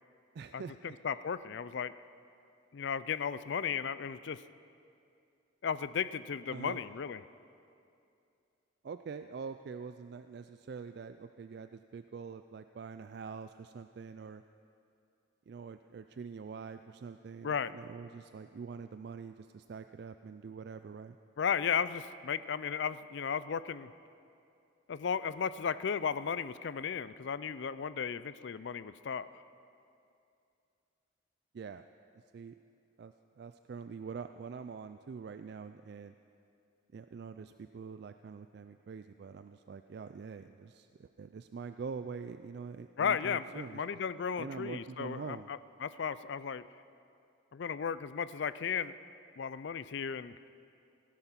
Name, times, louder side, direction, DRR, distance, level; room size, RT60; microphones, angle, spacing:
voice 1, 0.3-1.0 6.5-6.8 8.8-14.4 15.5-21.2 31.5-31.8 32.3-32.5 33.0-36.1 36.9-43.8 44.4-45.5, right 5 dB, 55° right, 10 dB, 0.3 m, -45 dB
voice 2, 1.0-1.9 2.7-4.4 5.6-7.2 17.4-17.7 21.4-23.9 24.9-29.3 43.0-46.6 47.5-48.9 49.4-50.3, left 7 dB, 60° left, 15 dB, 0.4 m, -35 dB
16.5 x 11.5 x 5.8 m, 2.5 s
head